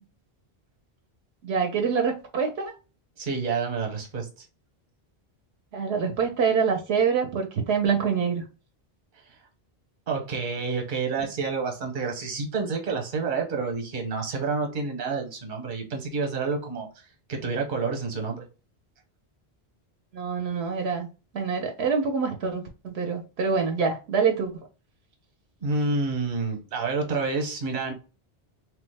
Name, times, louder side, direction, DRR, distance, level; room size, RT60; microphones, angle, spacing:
voice 1, 1.4-2.7 5.7-8.4 20.1-21.1 21.3-24.5, right 6 dB, 80° right, 4 dB, 0.8 m, -25 dB
voice 2, 3.2-4.5 10.1-18.5 25.6-27.9, right 4 dB, 50° right, 2 dB, 0.9 m, -29 dB
3.1 x 2.0 x 3.2 m, 0.33 s
omnidirectional pair, 1.1 m